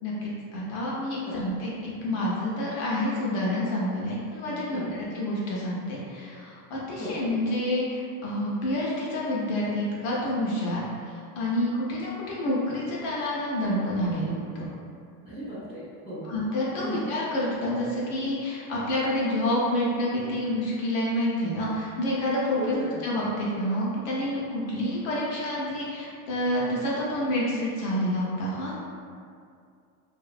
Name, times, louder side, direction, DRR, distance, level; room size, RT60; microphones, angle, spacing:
voice 1, 0.0-10.8 11.4-14.7 16.2-22.8 23.0-28.7, left 1 dB, 45° left, -6 dB, 0.4 m, -28 dB
voice 2, 4.7-5.0 7.0-7.1 15.2-16.3 16.8-17.0 22.5-23.0, right 1 dB, 15° right, -11 dB, 0.4 m, -35 dB
2.5 x 2.0 x 2.3 m, 2.4 s
supercardioid pair, 145°, 42 cm